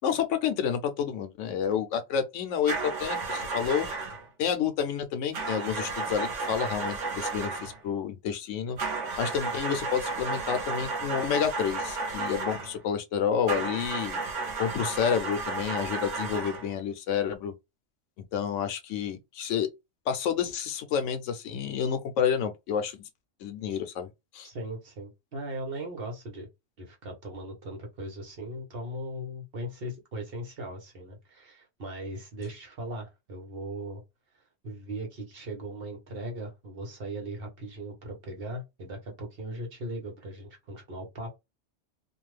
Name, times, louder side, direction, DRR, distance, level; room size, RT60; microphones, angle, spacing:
voice 1, 0.0-3.9 4.4-8.8 9.2-14.2 14.6-17.5 18.3-19.7 20.1-23.0 23.4-24.5, left 8 dB, 90° left, 1.0 m, -29 dB
sound 1, 2.7-4.3 5.3-7.8 8.8-12.8 13.5-16.7, right 3 dB, 80° right, 1.1 m, -33 dB
voice 2, 24.4-26.5 26.8-34.0 34.6-41.3, right 1 dB, 55° right, 1.1 m, -38 dB
2.6 x 2.4 x 3.1 m
omnidirectional pair, 1.2 m